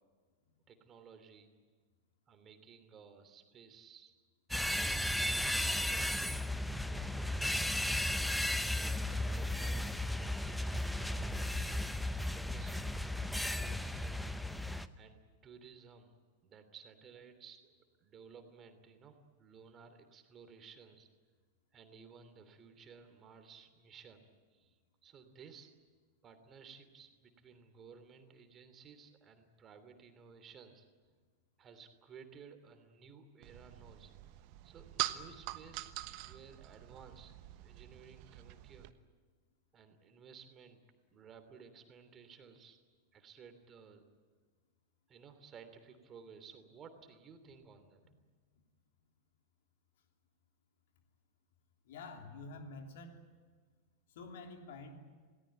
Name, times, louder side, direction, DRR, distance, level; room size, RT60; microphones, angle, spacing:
voice 1, 0.7-1.5 2.3-4.2 4.5-7.6 8.5-14.1 15.0-16.2 16.4-17.6 18.0-21.1 21.7-24.2 24.5-25.7 26.2-30.9 31.6-34.1 34.6-35.9 36.2-37.3 37.6-38.9 39.7-40.8 41.1-42.8 43.1-44.0 45.1-48.0, right 6 dB, 25° right, 8 dB, 3.0 m, -57 dB
sound 1, 4.5-14.9, left 1 dB, ahead, 0.9 m, -35 dB
sound 2, 33.4-38.9, right 17 dB, 45° right, 1.1 m, -44 dB
voice 2, 51.8-53.2 54.1-55.0, left 3 dB, 55° left, 4 dB, 3.0 m, -48 dB
28.0 x 18.5 x 9.2 m, 1.5 s
figure-of-eight pair, 90°, 0 cm